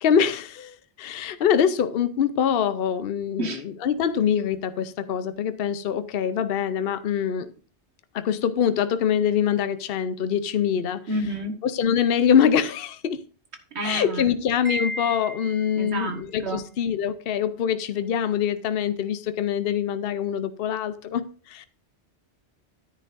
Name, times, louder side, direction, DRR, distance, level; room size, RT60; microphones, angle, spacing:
voice 1, 0.0-7.5 8.1-11.0 11.6-13.2 13.8-21.7, left 8 dB, 60° left, 0.8 m, -24 dB
voice 2, 11.1-11.5 13.8-14.3 15.8-16.6, right 1 dB, 70° right, 1.7 m, -29 dB
Wind chime, 14.7-16.0, right 1 dB, 50° right, 2.0 m, -33 dB
10.5 x 9.9 x 2.6 m
omnidirectional pair, 1.1 m